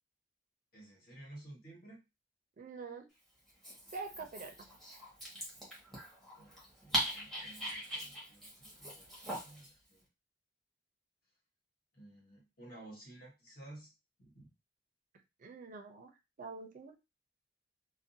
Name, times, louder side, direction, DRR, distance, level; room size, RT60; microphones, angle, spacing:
voice 1, 0.7-2.0 6.3-10.1 11.9-13.9 14.2-14.5, right 1 dB, 50° left, -3 dB, 1.2 m, -54 dB
voice 2, 2.6-3.1 3.9-4.6 15.4-16.1 16.4-16.9, right 4 dB, 45° right, 5 dB, 0.4 m, -45 dB
Dog, 3.5-9.7, equal, ahead, 1.0 m, -41 dB
2.5 x 2.1 x 2.6 m, 0.25 s
head